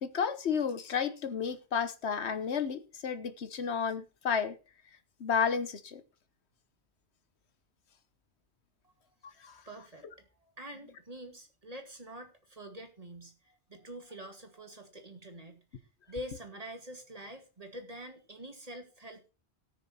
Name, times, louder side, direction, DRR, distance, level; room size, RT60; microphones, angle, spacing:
voice 1, 0.0-4.6 5.2-6.0 9.4-9.6, left 6 dB, 80° left, 1.3 m, -32 dB
voice 2, 9.7-19.3, equal, 35° right, 2.3 m, -46 dB
18.0 x 6.5 x 4.3 m
omnidirectional pair, 1.1 m